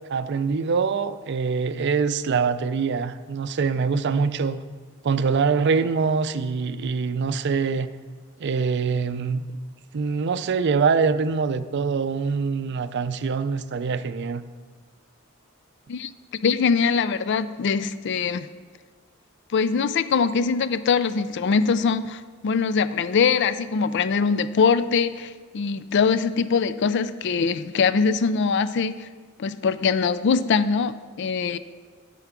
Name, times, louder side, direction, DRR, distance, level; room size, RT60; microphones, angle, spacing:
voice 1, 0.1-4.6 5.0-7.9 8.4-9.5 9.9-14.4, right 5 dB, 55° right, 12 dB, 0.4 m, -24 dB
voice 2, 16.4-18.5 19.5-29.1 29.4-31.6, left 5 dB, 60° left, 14 dB, 0.4 m, -22 dB
12.5 x 4.6 x 6.0 m, 1.5 s
head